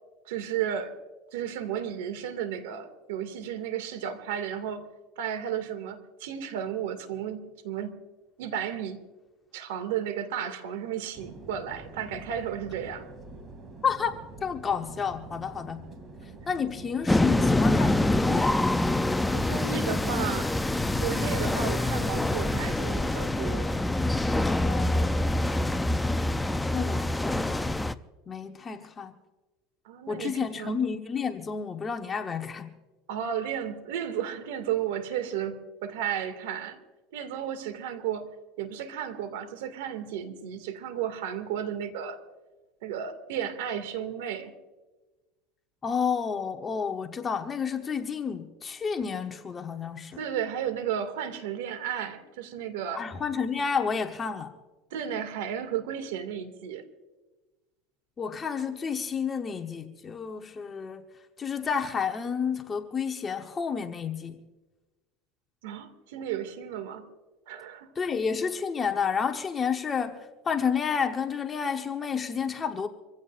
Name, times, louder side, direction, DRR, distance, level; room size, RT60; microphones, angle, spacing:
voice 1, 0.3-0.9 1.3-4.8 5.2-8.0 8.4-9.0 9.5-13.1 19.3-20.5 21.0-23.7 29.8-30.8 33.1-36.8 37.1-38.3 38.6-42.2 42.8-44.5 50.2-53.0 54.9-56.8 65.6-67.0 67.5-67.9, right 9 dB, 85° right, 2.2 m, -33 dB
sound 1, 11.1-20.3, right 2 dB, 30° right, 2.6 m, -46 dB
voice 2, 13.8-15.9 16.5-18.6 24.6-25.5 26.7-27.7 28.3-29.1 30.1-32.7 45.8-50.2 52.9-54.5 58.2-61.0 61.4-64.4 67.9-72.9, left 6 dB, 25° left, 1.1 m, -30 dB
sound 2, 17.1-27.9, left 1 dB, 5° left, 0.5 m, -25 dB
25.5 x 16.0 x 2.6 m
supercardioid pair, 125°, 0 cm